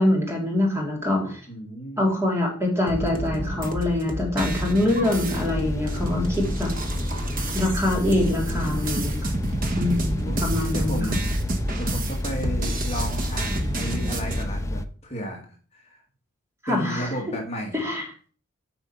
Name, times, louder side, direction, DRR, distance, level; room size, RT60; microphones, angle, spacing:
voice 1, 0.0-1.4 2.0-6.7 7.5-9.3 9.8-11.0 16.6-17.1 17.7-18.1, left 1 dB, 10° right, -1 dB, 2.4 m, -24 dB
voice 2, 1.5-2.1 8.0-8.9 9.7-9.8 10.2-10.4 10.7-11.4 11.7-15.4 15.7-16.0 16.7-17.8, equal, 30° left, 0 dB, 1.9 m, -33 dB
sound 1, 2.9-14.4, right 1 dB, 40° right, 1.0 m, -30 dB
sound 2, 5.3-14.9, left 1 dB, 15° left, 0.4 m, -29 dB
8.7 x 4.5 x 5.7 m, 0.40 s
head